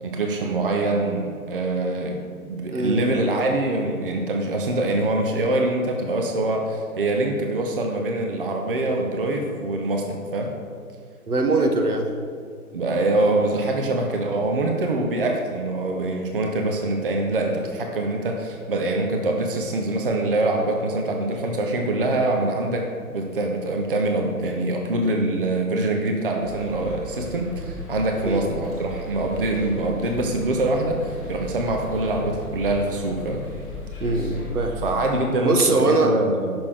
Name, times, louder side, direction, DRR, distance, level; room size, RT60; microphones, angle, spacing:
voice 1, 0.0-10.5 12.7-33.4 34.8-36.5, right 2 dB, 35° right, 2 dB, 0.6 m, -24 dB
voice 2, 2.7-3.0 11.3-12.1 28.2-28.5 34.0-34.8 35.4-36.1, right 2 dB, 75° right, 3 dB, 1.1 m, -22 dB
sound 1, 26.4-35.0, left 1 dB, ahead, 1.2 m, -36 dB
6.6 x 6.1 x 4.8 m, 2.1 s
figure-of-eight pair, 140°, 45 cm